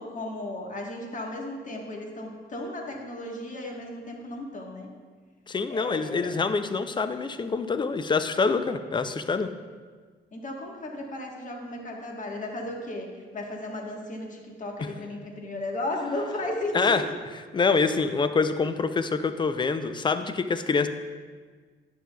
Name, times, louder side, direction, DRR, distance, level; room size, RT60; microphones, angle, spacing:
voice 1, 0.0-4.9 5.7-6.4 10.3-13.1 13.3-17.0, left 1 dB, 40° left, 1 dB, 1.2 m, -35 dB
voice 2, 5.5-9.5 14.8-14.9 16.7-17.0 17.5-20.9, left 4 dB, 25° left, 10 dB, 0.4 m, -25 dB
10.0 x 6.1 x 2.3 m, 1.5 s
cardioid pair, 90°, 20 cm